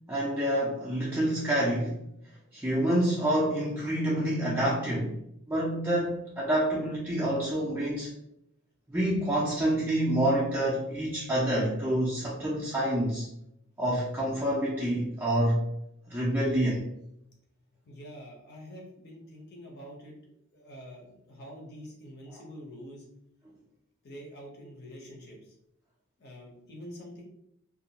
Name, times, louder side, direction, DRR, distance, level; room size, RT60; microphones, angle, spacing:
voice 1, 0.1-2.0 2.5-5.2 5.5-8.1 8.9-13.2 13.8-15.6 16.1-16.8 22.3-22.4, right 1 dB, 10° right, -6 dB, 0.4 m, -27 dB
voice 2, 17.9-20.2 20.5-23.0 24.0-25.5 26.2-27.2, equal, 45° left, 0 dB, 0.7 m, -46 dB
2.5 x 2.3 x 2.7 m, 0.78 s
head